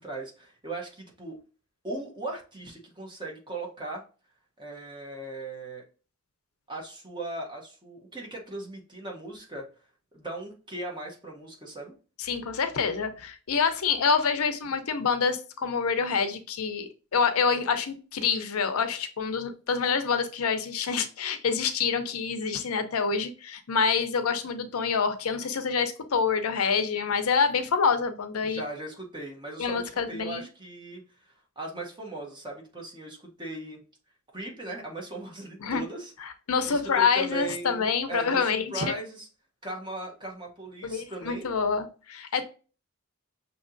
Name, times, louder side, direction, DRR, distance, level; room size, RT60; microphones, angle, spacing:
voice 1, 0.0-1.4 1.8-4.0 4.6-5.8 6.7-9.7 10.1-11.9 28.4-33.8 34.3-36.1 36.7-39.3 39.6-41.5, right 2 dB, 20° right, -1 dB, 1.2 m, -38 dB
voice 2, 12.2-28.6 29.6-30.4 35.6-35.8 36.2-38.9 40.8-42.4, left 5 dB, 85° left, 9 dB, 0.6 m, -27 dB
6.3 x 2.9 x 2.5 m, 0.36 s
head